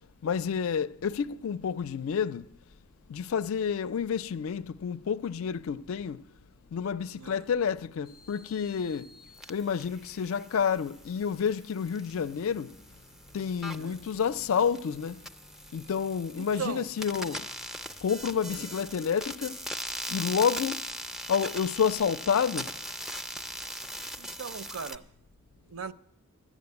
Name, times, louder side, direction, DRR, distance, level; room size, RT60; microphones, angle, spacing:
voice 1, 0.2-2.5 3.1-6.3 6.7-9.1 9.5-12.8 13.3-15.2 15.7-17.5 18.0-19.6 20.1-20.9 21.3-22.7, left 7 dB, 70° left, 0.4 m, -29 dB
voice 2, 7.1-7.5 13.7-14.0 16.4-16.9 18.4-18.7 24.2-25.0 25.6-25.9, right 6 dB, 75° right, 0.5 m, -39 dB
sound 1, 8.1-25.0, equal, ahead, 0.4 m, -41 dB
12.0 x 7.4 x 9.6 m
head